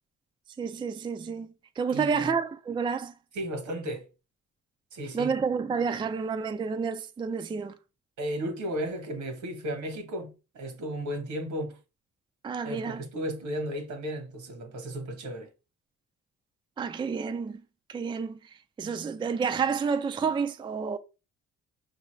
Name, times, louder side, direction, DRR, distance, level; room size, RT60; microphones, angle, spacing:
voice 1, 0.6-1.5 1.8-3.1 5.1-7.7 12.4-13.0 16.8-17.6 17.9-18.4 18.8-21.0, right 5 dB, 15° right, 0.3 m, -29 dB
voice 2, 1.9-2.3 3.3-4.1 4.9-5.3 8.2-11.8 12.6-15.5, equal, 70° right, 1.3 m, -34 dB
5.3 x 2.7 x 3.1 m
cardioid pair, 90°, 30 cm